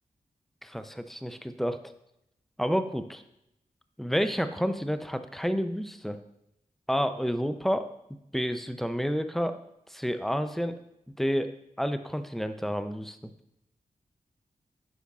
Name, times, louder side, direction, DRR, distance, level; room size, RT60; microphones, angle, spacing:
voice 1, 0.6-1.8 2.6-3.2 4.0-6.2 6.9-7.9 8.3-9.6 9.9-10.8 11.2-11.5 11.8-13.3, equal, ahead, 10 dB, 0.5 m, -29 dB
8.3 x 5.2 x 2.4 m, 0.81 s
cardioid pair, 45°, 14 cm